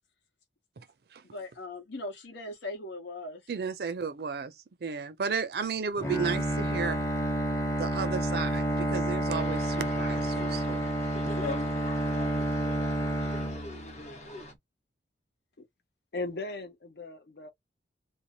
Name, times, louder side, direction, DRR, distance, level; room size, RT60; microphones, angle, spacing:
voice 1, 1.3-3.4 11.3-11.7, left 2 dB, 85° left, 1.1 m, -38 dB
voice 2, 3.5-4.5 4.8-7.0 7.8-10.9 11.4-11.6, right 5 dB, 60° right, 0.4 m, -33 dB
Bowed string instrument, 6.0-14.2, right 1 dB, 15° left, 0.6 m, -30 dB
sound 1, 9.3-14.5, left 1 dB, 40° left, 0.9 m, -44 dB
voice 3, 16.1-17.5, left 2 dB, 65° left, 0.7 m, -37 dB
2.6 x 2.1 x 2.9 m
head